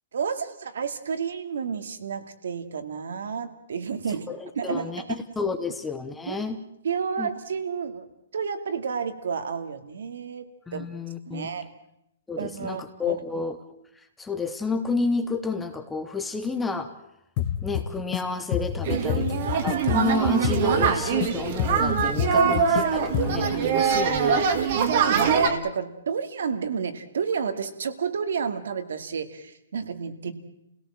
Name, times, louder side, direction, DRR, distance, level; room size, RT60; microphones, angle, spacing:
voice 1, 0.1-4.3 4.6-5.0 6.3-6.4 6.8-8.1 8.3-10.4 10.7-10.9 11.3-11.7 12.4-13.2 18.9-19.2 22.4-22.8 24.7-30.3, right 6 dB, 70° right, 8 dB, 2.3 m, -31 dB
voice 2, 4.1-5.0 5.4-6.6 7.2-7.3 10.7-11.5 12.3-13.6 14.0-16.9 17.6-24.8, left 4 dB, 5° left, 8 dB, 0.9 m, -31 dB
sound 1, 17.4-18.2 18.5-21.3 21.6-22.8 23.1-23.5, left 10 dB, 25° left, 1.0 m, -28 dB
sound 2, 18.9-25.5, right 6 dB, 35° right, 2.0 m, -23 dB
28.5 x 17.5 x 7.5 m, 0.81 s
hypercardioid pair, 175°, 0 cm